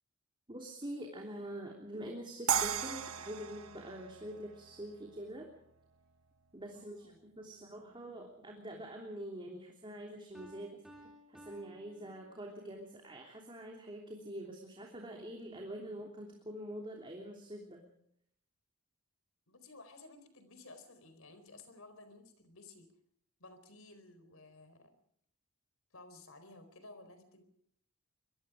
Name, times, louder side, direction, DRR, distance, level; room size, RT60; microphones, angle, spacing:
voice 1, 0.5-5.5 6.5-17.9, right 1 dB, 25° right, 1 dB, 3.2 m, -45 dB
sound 1, 2.5-5.5, right 8 dB, 90° right, 1.3 m, -36 dB
voice 2, 6.7-7.6 19.5-22.9 23.4-24.9 25.9-27.4, left 2 dB, 75° left, 10 dB, 4.5 m, -55 dB
Piano, 10.3-12.8, equal, ahead, 4.3 m, -57 dB
25.0 x 21.5 x 5.0 m, 0.68 s
head